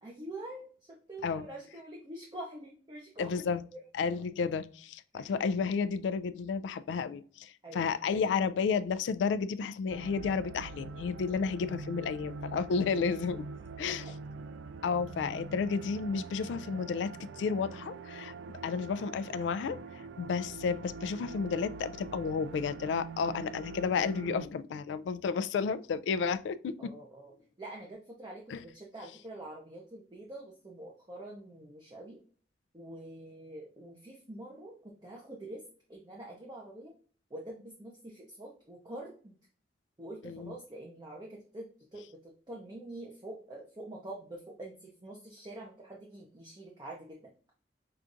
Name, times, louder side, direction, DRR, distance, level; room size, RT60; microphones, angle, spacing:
voice 1, 0.0-3.8 5.1-5.3 7.6-7.9 13.9-14.3 26.8-27.3 27.6-32.2 32.7-35.6 35.9-36.9 37.3-39.4 40.0-47.3, right 1 dB, 25° right, 0.6 m, -46 dB
voice 2, 3.2-3.6 3.9-13.4 13.8-14.1 14.8-18.3 18.6-26.9 28.5-28.6 40.2-40.5, left 5 dB, 80° left, 0.3 m, -32 dB
sound 1, 9.9-24.5, right 4 dB, 90° right, 0.3 m, -44 dB
5.7 x 2.4 x 2.5 m
head